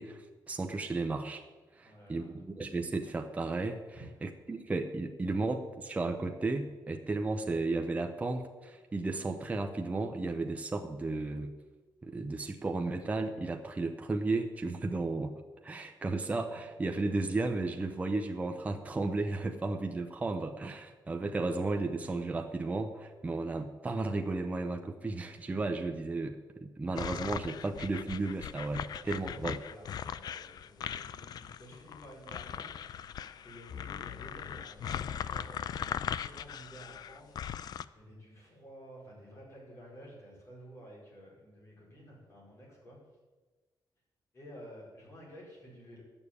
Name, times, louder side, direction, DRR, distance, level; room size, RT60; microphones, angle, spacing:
voice 1, 0.0-1.4 1.7-3.8 4.2-11.5 12.0-15.3 15.6-29.6, right 3 dB, 20° right, 4 dB, 0.7 m, -34 dB
voice 2, 1.8-2.3 3.9-4.1 29.2-32.7 33.4-35.8 36.1-37.4 37.9-43.0 44.3-46.0, equal, 40° left, -4 dB, 5.0 m, -52 dB
sound 1, 27.0-37.8, left 9 dB, 60° left, 0.4 m, -39 dB
11.0 x 7.1 x 8.3 m, 1.3 s
wide cardioid pair, 155°, 8 cm